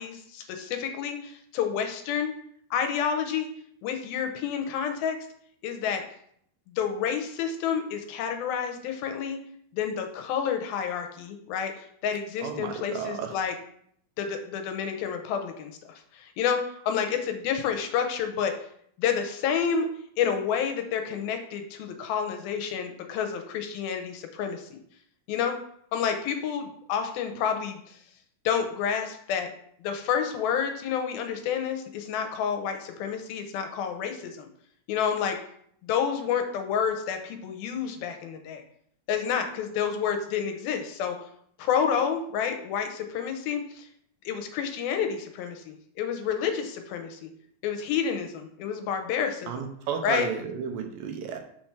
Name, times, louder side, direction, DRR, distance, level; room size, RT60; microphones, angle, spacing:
voice 1, 0.0-2.3 2.7-3.5 3.8-5.2 5.6-6.0 6.8-9.4 9.7-13.5 14.2-15.7 16.1-16.6 16.9-18.5 19.0-19.9 20.2-24.8 25.3-25.6 25.9-28.0 28.5-29.5 29.8-34.5 34.9-35.4 35.8-38.6 39.1-41.2 41.6-43.9 44.3-47.3 47.6-49.5 50.0-50.3, left 7 dB, 85° left, 6 dB, 2.6 m, -29 dB
voice 2, 12.4-13.3 49.5-51.4, right 7 dB, 75° right, 5 dB, 2.5 m, -33 dB
6.1 x 4.6 x 5.8 m, 0.67 s
omnidirectional pair, 4.2 m